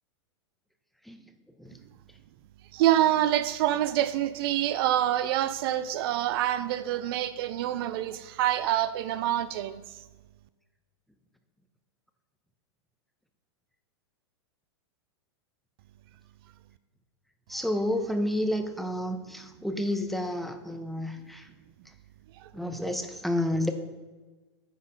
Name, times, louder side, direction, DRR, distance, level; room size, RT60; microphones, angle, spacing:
voice 1, 2.7-10.0 22.4-22.5, right 12 dB, 55° right, 13 dB, 0.4 m, -26 dB
voice 2, 17.5-21.5 22.5-23.7, left 1 dB, ahead, 7 dB, 0.7 m, -30 dB
9.5 x 4.0 x 5.1 m, 1.2 s
hypercardioid pair, 105°, 15 cm